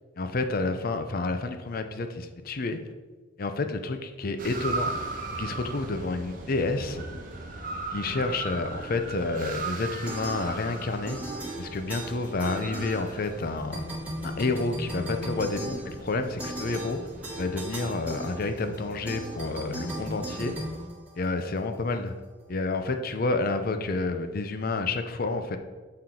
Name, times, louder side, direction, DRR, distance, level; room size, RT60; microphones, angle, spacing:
voice 1, 0.2-2.8 3.4-4.9 5.3-7.0 7.9-11.2 11.6-13.8 14.2-17.0 17.4-20.6 21.2-22.1 22.5-25.6, left 3 dB, 50° left, 8 dB, 0.5 m, -29 dB
sound 1, 4.4-20.9, right 3 dB, 45° right, 1.0 m, -39 dB
sound 2, 10.1-10.8 11.1-13.4 13.7-21.6, right 1 dB, 10° right, 1.5 m, -37 dB
7.6 x 4.3 x 3.8 m, 1.3 s
head